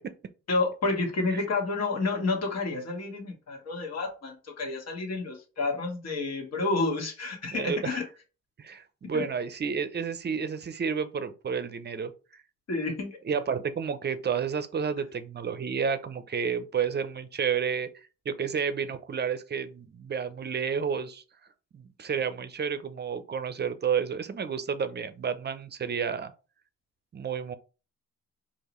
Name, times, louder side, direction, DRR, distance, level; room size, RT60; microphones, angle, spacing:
voice 1, 0.5-8.0 9.1-9.3 12.7-13.2, left 3 dB, 55° left, 1.8 m, -30 dB
voice 2, 7.5-8.0 8.6-12.1 13.3-17.9 18.3-21.2 21.7-26.3 27.1-27.5, right 6 dB, 35° right, 0.6 m, -30 dB
4.7 x 2.9 x 3.0 m
cardioid pair, 90°, 30 cm